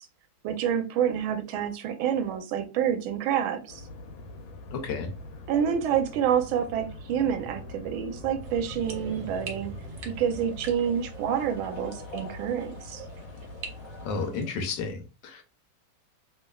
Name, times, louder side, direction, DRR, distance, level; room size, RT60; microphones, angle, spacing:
voice 1, 0.4-3.8 5.5-9.7 10.0-13.0, right 8 dB, 85° right, 1.4 m, -28 dB
sound 1, 3.7-14.3, left 2 dB, 85° left, 1.4 m, -43 dB
voice 2, 4.7-5.1 14.0-15.4, left 4 dB, 70° left, 1.2 m, -32 dB
sound 2, 7.1-11.4, right 1 dB, 10° right, 0.6 m, -45 dB
sound 3, 8.4-14.5, right 4 dB, 65° right, 1.2 m, -46 dB
3.2 x 3.0 x 2.2 m
omnidirectional pair, 2.2 m